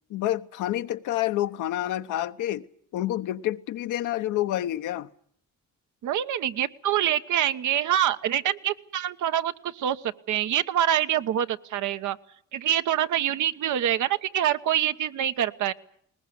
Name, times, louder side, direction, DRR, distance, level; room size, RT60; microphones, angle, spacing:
voice 1, 0.1-2.6 2.9-5.1, left 13 dB, 85° left, 1.0 m, -28 dB
voice 2, 6.0-12.2 12.5-15.7, right 11 dB, 75° right, 1.2 m, -25 dB
21.0 x 19.5 x 9.5 m
cardioid pair, 90°, 30 cm